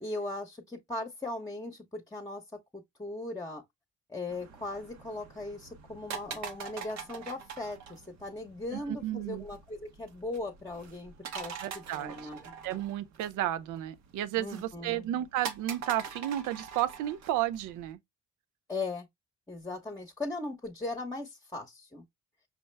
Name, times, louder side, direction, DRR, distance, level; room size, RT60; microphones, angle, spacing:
voice 1, 0.0-3.6 4.1-12.5 14.4-15.1 18.7-19.1 19.5-22.0, left 2 dB, 10° left, 0.9 m, -39 dB
sound 1, 4.3-17.9, right 6 dB, 65° right, 0.8 m, -44 dB
voice 2, 8.7-9.4 11.6-12.2 12.6-18.0, right 13 dB, 90° right, 0.5 m, -32 dB
5.8 x 2.1 x 3.2 m
cardioid pair, 90°, 30 cm